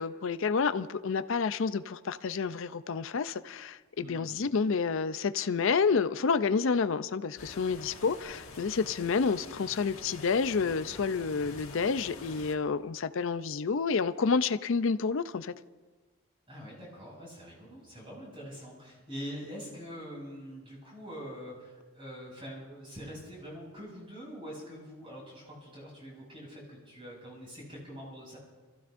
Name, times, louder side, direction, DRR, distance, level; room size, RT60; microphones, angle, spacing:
voice 1, 0.0-15.5, left 5 dB, 65° left, 0.5 m, -29 dB
voice 2, 4.0-4.4 16.5-28.4, equal, 25° right, 6.1 m, -44 dB
sound 1, 7.4-12.6, left 3 dB, 80° left, 1.7 m, -47 dB
28.0 x 15.0 x 2.6 m
head